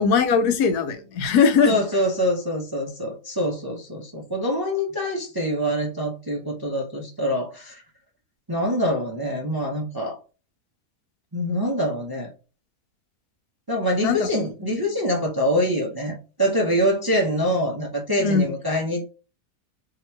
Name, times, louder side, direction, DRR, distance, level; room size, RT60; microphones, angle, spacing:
voice 1, 0.0-1.8 14.0-14.3 18.2-18.5, left 6 dB, 85° left, 1.2 m, -20 dB
voice 2, 1.6-7.8 8.5-10.2 11.3-12.3 13.7-19.1, equal, 25° right, 0.5 m, -25 dB
2.9 x 2.8 x 4.4 m
omnidirectional pair, 1.6 m